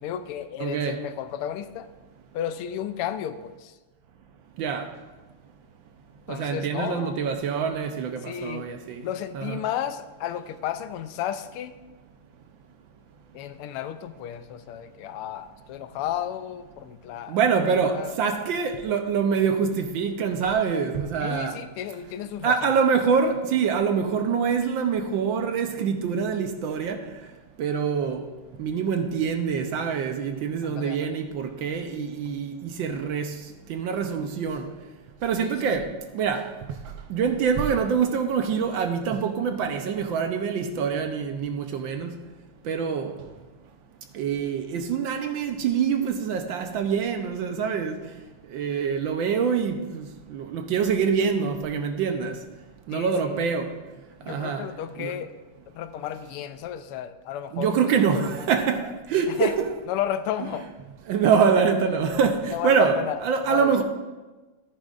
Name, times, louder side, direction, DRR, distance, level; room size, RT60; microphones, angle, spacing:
voice 1, 0.0-1.9 2.3-3.7 6.3-7.2 8.2-8.7 9.0-11.8 13.3-17.4 17.9-18.5 21.2-22.7 30.6-31.2 35.4-35.9 52.9-53.3 54.2-55.3 55.7-57.9 58.1-58.5 59.3-59.5 59.9-60.7 62.5-63.2 63.5-63.7, left 10 dB, 85° left, 1.5 m, -33 dB
voice 2, 0.6-1.0 4.6-4.9 6.3-9.0 9.3-9.6 17.3-21.6 22.4-27.0 27.6-28.2 28.6-33.3 33.7-34.7 35.2-35.9 36.1-36.5 37.1-42.1 42.6-43.1 44.1-48.0 48.5-52.4 52.9-53.7 54.3-54.6 55.0-55.1 57.5-59.7 60.4-60.5 61.1-63.8, right 6 dB, 70° right, 1.4 m, -25 dB
14.0 x 10.0 x 2.5 m
omnidirectional pair, 2.4 m